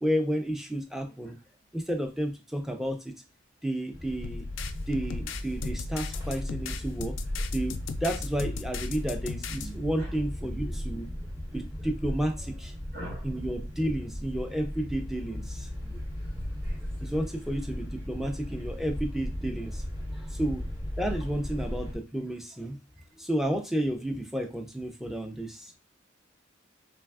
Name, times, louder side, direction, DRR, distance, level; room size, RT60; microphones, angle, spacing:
voice 1, 0.0-1.4 1.7-3.1 3.6-4.5 4.9-7.2 7.5-11.1 11.5-12.7 13.2-15.9 17.0-19.8 20.1-20.7 21.0-22.8 23.2-25.7, right 1 dB, ahead, 0.4 m, -32 dB
sound 1, 3.9-22.0, equal, 25° right, 1.2 m, -36 dB
sound 2, 4.2-9.7, left 5 dB, 80° left, 0.3 m, -37 dB
voice 2, 12.9-13.3 16.6-16.8 20.3-20.4, left 1 dB, 55° right, 1.5 m, -40 dB
3.2 x 2.3 x 2.3 m
head